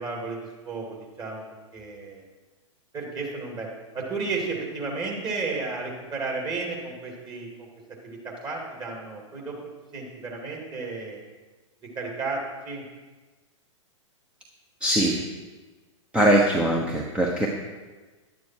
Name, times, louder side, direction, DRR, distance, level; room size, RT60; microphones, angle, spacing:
voice 1, 0.0-1.4 1.7-2.2 2.9-3.7 3.9-7.7 8.0-11.2 11.9-12.8, right 3 dB, 25° right, -1 dB, 3.1 m, -33 dB
voice 2, 14.8-15.2 16.1-17.5, right 1 dB, 5° right, -1 dB, 1.0 m, -21 dB
11.0 x 9.4 x 4.7 m, 1.3 s
hypercardioid pair, 110°, 16 cm